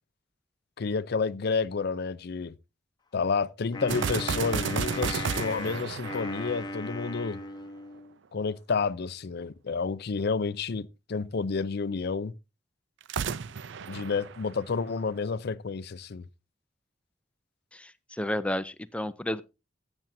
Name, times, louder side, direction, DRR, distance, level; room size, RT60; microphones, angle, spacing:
voice 1, 0.8-2.6 3.1-7.4 8.3-12.3 13.9-16.3, left 4 dB, 60° left, 0.5 m, -30 dB
Wind instrument woodwind instrument, 3.7-8.2, left 2 dB, 20° left, 1.0 m, -37 dB
sound 1, 3.9-7.3 13.0-15.1, right 6 dB, 70° right, 0.5 m, -33 dB
voice 2, 17.7-19.4, left 1 dB, 5° left, 0.5 m, -32 dB
15.0 x 8.9 x 2.6 m
head